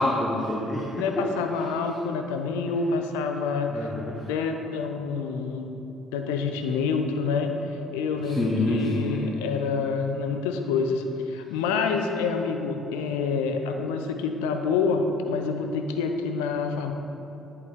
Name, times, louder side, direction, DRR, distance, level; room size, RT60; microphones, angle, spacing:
voice 1, 0.0-1.3 1.6-1.7 3.7-4.2 8.2-9.3, left 1 dB, 15° left, -3 dB, 1.1 m, -27 dB
voice 2, 1.0-3.9 4.3-5.7 6.1-7.5 7.9-16.9, left 5 dB, 75° left, 5 dB, 0.5 m, -27 dB
11.0 x 4.9 x 3.5 m, 2.8 s
hypercardioid pair, 45°, 0 cm